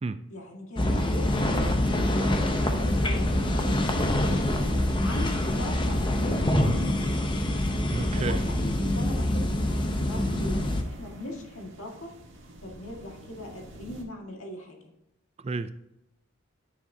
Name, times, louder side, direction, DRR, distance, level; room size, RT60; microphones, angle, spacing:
voice 1, 0.3-1.8 2.1-4.5 5.0-7.3 8.2-12.1 12.6-14.8, left 1 dB, 80° left, 1 dB, 1.8 m, -39 dB
sound 1, 0.8-10.8, left 1 dB, 20° left, 0.7 m, -25 dB
voice 2, 7.9-8.4 15.4-15.7, right 3 dB, 30° right, 12 dB, 0.3 m, -31 dB
sound 2, 8.4-14.0, right 1 dB, 60° right, 1.6 m, -48 dB
10.0 x 6.3 x 2.7 m, 0.89 s
head